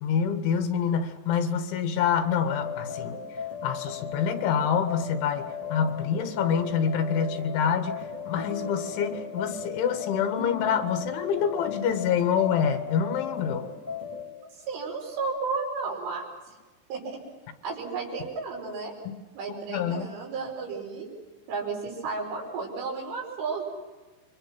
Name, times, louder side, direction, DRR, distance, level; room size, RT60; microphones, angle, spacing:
voice 1, 0.0-3.2 3.6-13.7 19.5-20.1, left 7 dB, 75° left, 7 dB, 3.9 m, -26 dB
sound 1, 2.4-14.3, left 6 dB, 10° left, 1.2 m, -36 dB
voice 2, 14.7-16.2 16.9-17.2 17.6-18.9 19.3-21.1 21.5-23.6, right 4 dB, 80° right, -1 dB, 8.0 m, -33 dB
29.5 x 24.0 x 6.0 m, 1.2 s
omnidirectional pair, 5.6 m